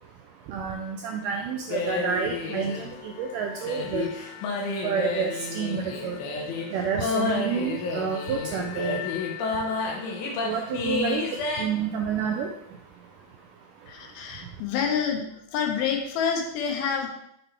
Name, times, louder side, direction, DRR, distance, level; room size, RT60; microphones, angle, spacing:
voice 1, 0.0-14.6, right 6 dB, 85° right, 3 dB, 1.9 m, -31 dB
sound 1, 1.7-11.6, left 4 dB, 70° left, 2.1 m, -31 dB
voice 2, 13.9-15.3 15.5-17.1, left 7 dB, 85° left, 2 dB, 2.8 m, -27 dB
6.7 x 4.2 x 4.4 m, 0.75 s
omnidirectional pair, 4.2 m